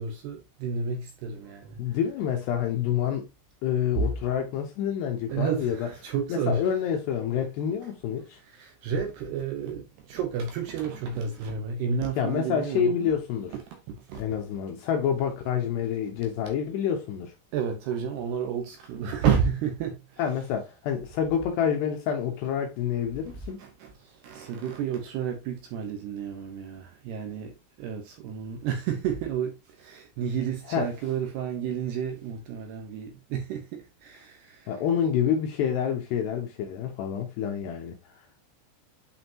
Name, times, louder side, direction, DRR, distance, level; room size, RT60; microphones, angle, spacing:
voice 1, 0.0-2.0 4.0-4.1 5.3-6.6 8.4-13.1 13.7-14.2 17.5-20.2 23.3-34.7, right 6 dB, 70° right, 2.7 m, -31 dB
voice 2, 1.8-3.3 3.6-8.4 12.2-13.5 14.2-17.3 20.2-23.6 30.7-30.9 34.7-38.0, left 8 dB, 75° left, 2.6 m, -28 dB
8.9 x 5.0 x 2.9 m
omnidirectional pair, 5.7 m